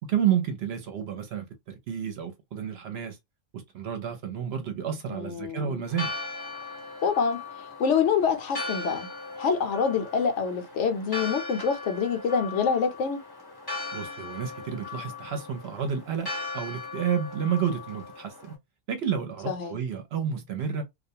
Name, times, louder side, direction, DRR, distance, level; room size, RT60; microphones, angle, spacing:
voice 1, 0.1-3.2 3.5-6.1 13.9-16.3 16.5-18.5 18.9-20.8, right 8 dB, 65° right, 0.8 m, -30 dB
voice 2, 5.1-5.7 7.0-7.4 7.8-9.1 9.3-13.2 19.5-19.8, left 6 dB, 70° left, 0.9 m, -26 dB
Church bell, 5.9-18.5, left 3 dB, 25° left, 0.6 m, -38 dB
2.4 x 2.1 x 2.6 m
omnidirectional pair, 1.3 m